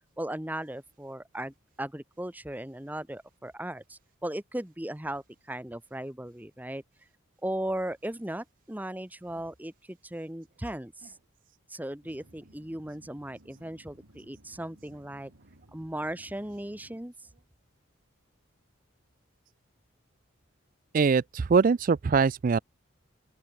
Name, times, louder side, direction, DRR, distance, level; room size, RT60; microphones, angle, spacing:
voice 1, 0.2-6.8 7.4-11.1 11.7-15.3 15.7-17.1, right 1 dB, 10° right, 1.0 m, -37 dB
sound 1, 12.0-17.0, right 1 dB, 90° right, 4.1 m, -58 dB
voice 2, 20.9-22.6, right 5 dB, 40° right, 0.3 m, -23 dB
open air
head